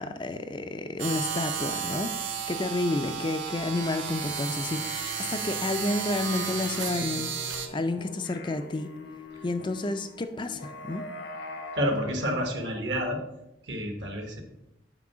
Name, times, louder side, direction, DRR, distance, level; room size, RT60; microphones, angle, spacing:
voice 1, 0.0-7.3 7.7-8.9 9.4-11.1, left 2 dB, 25° left, 8 dB, 0.4 m, -30 dB
sound 1, 1.0-7.7, right 7 dB, 80° right, 1.0 m, -33 dB
sound 2, 3.6-12.0, left 2 dB, 80° left, 1.0 m, -44 dB
voice 2, 11.7-13.2 13.7-14.4, equal, 65° right, 3 dB, 1.4 m, -29 dB
6.0 x 4.7 x 6.1 m, 0.89 s
head